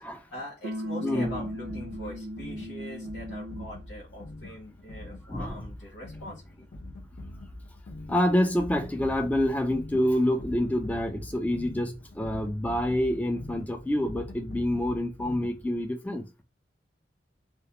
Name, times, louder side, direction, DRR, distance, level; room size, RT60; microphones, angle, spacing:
voice 1, 0.3-6.7, equal, 80° left, 1.0 m, -42 dB
sound 1, 0.6-3.8, equal, 85° right, 0.4 m, -36 dB
voice 2, 1.0-1.3 5.3-5.6 8.1-16.2, left 1 dB, 10° left, 0.3 m, -27 dB
sound 2, 1.2-15.9, left 1 dB, 55° left, 0.6 m, -43 dB
2.3 x 2.0 x 2.8 m
head